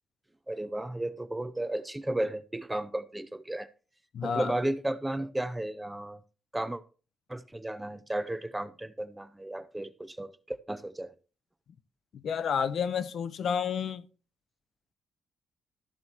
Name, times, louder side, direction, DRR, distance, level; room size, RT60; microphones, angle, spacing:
voice 1, 0.5-3.7 4.2-6.2 6.5-6.8 7.3-11.1, right 1 dB, 10° right, 0.5 m, -34 dB
voice 2, 4.1-4.5 12.1-14.1, left 7 dB, 55° left, 0.8 m, -30 dB
13.5 x 7.8 x 2.9 m
cardioid pair, 120°, 0 cm